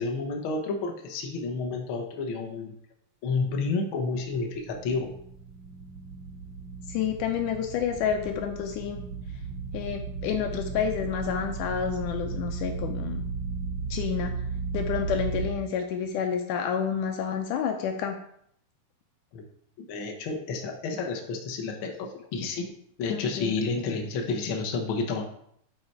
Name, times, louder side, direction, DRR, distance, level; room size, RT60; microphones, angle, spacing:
voice 1, 0.0-2.7 3.2-5.1 19.3-19.4 19.9-22.7 23.0-25.2, left 4 dB, 65° left, 2 dB, 1.3 m, -30 dB
sound 1, 4.2-15.5, right 5 dB, 75° right, 2.5 m, -35 dB
voice 2, 6.9-9.0 9.7-13.2 13.9-14.3 14.7-18.2 23.1-23.5, left 8 dB, 80° left, 4 dB, 2.2 m, -29 dB
7.9 x 5.8 x 4.6 m, 0.69 s
omnidirectional pair, 3.6 m